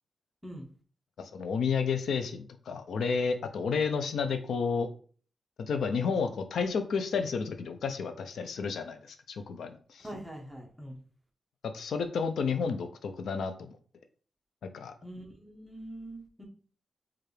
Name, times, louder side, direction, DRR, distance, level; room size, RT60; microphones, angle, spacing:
voice 1, 1.2-4.9 5.6-10.1 11.7-13.7 14.6-14.9, left 5 dB, 85° left, 8 dB, 0.4 m, -31 dB
voice 2, 10.0-11.0 15.0-16.4, right 1 dB, 5° right, 0 dB, 0.8 m, -43 dB
4.6 x 2.4 x 3.2 m, 0.43 s
wide cardioid pair, 140°, 0 cm